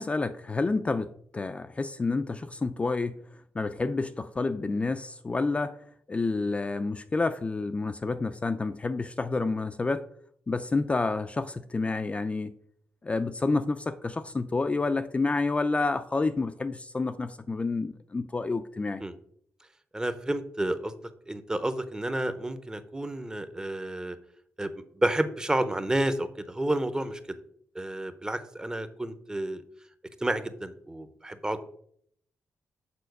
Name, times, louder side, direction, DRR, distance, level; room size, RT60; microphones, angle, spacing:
voice 1, 0.0-3.2 3.5-5.8 6.1-10.1 10.5-12.5 13.0-19.0, left 3 dB, 25° left, 9 dB, 0.4 m, -29 dB
voice 2, 19.9-20.9 21.3-24.2 24.6-27.2 27.7-29.6 30.2-31.6, right 1 dB, 15° right, 11 dB, 0.7 m, -30 dB
6.9 x 4.3 x 6.5 m, 0.67 s
wide cardioid pair, 125°, 5 cm